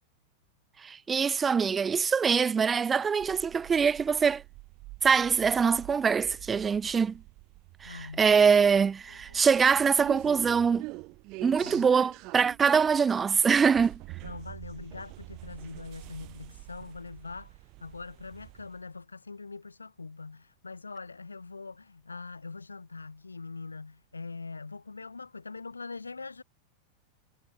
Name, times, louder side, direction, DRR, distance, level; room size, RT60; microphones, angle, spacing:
voice 1, 0.8-4.4 5.0-7.2 7.8-10.9 11.4-14.0, right 6 dB, 20° right, 0.4 m, -24 dB
sound 1, 3.2-18.9, right 24 dB, 40° right, 1.6 m, -46 dB
voice 2, 7.8-8.3 8.6-8.7 9.1-9.4 11.6-11.9 14.2-26.4, left 4 dB, 80° left, 0.9 m, -43 dB
figure-of-eight pair, 90°, 0 cm